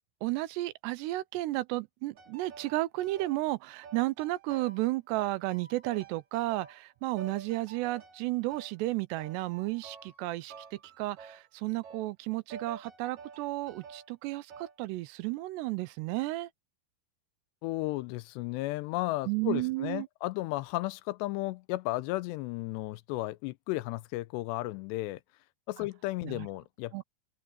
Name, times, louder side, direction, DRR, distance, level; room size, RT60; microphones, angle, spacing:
voice 1, 0.2-16.5 19.3-20.1 26.2-26.5 26.9-27.0, right 19 dB, 80° right, 2.8 m, -33 dB
sound 1, 2.2-3.4 3.8-4.9 5.2-6.9 7.2-8.7 9.2-10.2 10.5-11.5 11.8-12.1 12.5-14.1 14.5-14.9, right 6 dB, 50° right, 5.7 m, -49 dB
voice 2, 17.6-25.2 25.7-27.0, left 19 dB, 85° left, 2.8 m, -34 dB
open air
omnidirectional pair, 5.0 m